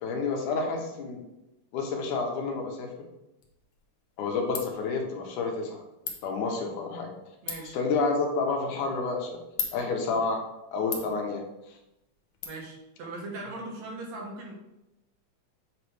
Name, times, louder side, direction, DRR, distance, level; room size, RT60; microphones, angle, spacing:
voice 1, 0.0-1.2 1.7-3.1 4.2-5.8 6.2-7.1 7.7-9.4 9.7-10.4 10.7-11.4, left 4 dB, 85° left, 2 dB, 2.4 m, -29 dB
Ratchet pawl, 3.4-12.5, left 6 dB, 65° left, 1.6 m, -42 dB
voice 2, 7.4-7.8 12.5-14.6, right 2 dB, 65° right, -1 dB, 2.3 m, -39 dB
7.8 x 3.0 x 4.8 m, 0.92 s
omnidirectional pair, 3.6 m